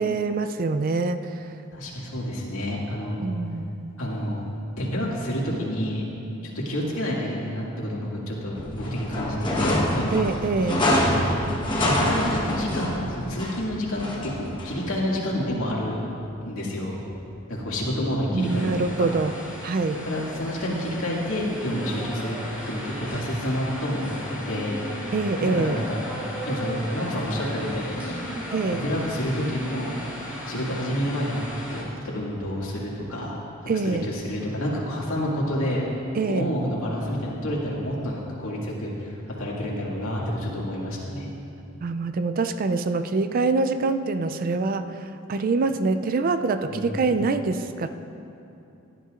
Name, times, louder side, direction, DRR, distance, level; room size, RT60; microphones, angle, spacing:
voice 1, 0.0-1.5 3.2-4.0 10.1-10.8 18.3-19.3 19.6-20.0 25.1-25.8 28.5-28.8 33.7-34.1 36.1-36.5 41.8-47.9, right 3 dB, 40° right, 10 dB, 0.3 m, -25 dB
voice 2, 1.7-3.2 4.0-4.4 4.8-6.1 6.4-10.3 11.1-13.0 13.3-16.1 16.4-16.9 17.5-18.9 20.1-22.4 22.7-24.8 25.4-26.0 26.4-28.3 28.8-30.0 30.4-33.4 33.7-35.8 36.3-41.3 46.7-47.2, equal, 75° left, -4 dB, 2.1 m, -29 dB
sound 1, 8.6-14.9, left 1 dB, 20° left, 1.2 m, -26 dB
sound 2, 18.4-31.8, equal, 10° right, 2.8 m, -36 dB
16.5 x 11.0 x 2.5 m, 2.8 s
head